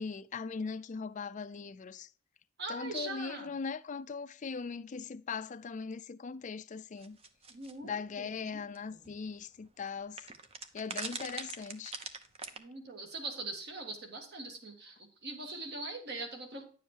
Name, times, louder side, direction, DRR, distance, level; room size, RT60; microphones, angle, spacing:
voice 1, 0.0-2.1 2.7-7.2 7.8-10.3 10.7-12.0, left 5 dB, 35° left, 0.4 m, -40 dB
voice 2, 2.6-3.6 7.5-8.6 8.9-9.1 12.6-16.6, right 2 dB, 50° right, 1.6 m, -42 dB
sound 1, 7.0-7.7 8.7-8.8 9.0-9.1 10.2-12.6, right 4 dB, 30° right, 0.7 m, -41 dB
10.0 x 7.2 x 2.9 m
head